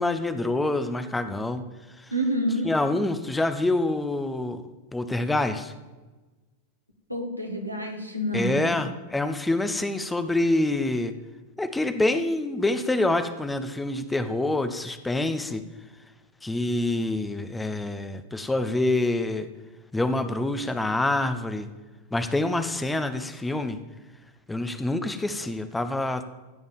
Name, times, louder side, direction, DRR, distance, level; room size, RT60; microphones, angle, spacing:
voice 1, 0.0-1.6 2.0-2.1 2.6-4.6 4.9-5.7 8.3-11.1 11.6-15.6 16.4-19.5 19.9-21.7 22.1-23.8 24.5-26.2, left 2 dB, 10° left, 10 dB, 0.8 m, -26 dB
voice 2, 2.1-2.7 7.1-8.8, equal, 90° right, 1 dB, 2.0 m, -28 dB
16.0 x 5.4 x 7.2 m, 1.2 s
figure-of-eight pair, 90°, 0 cm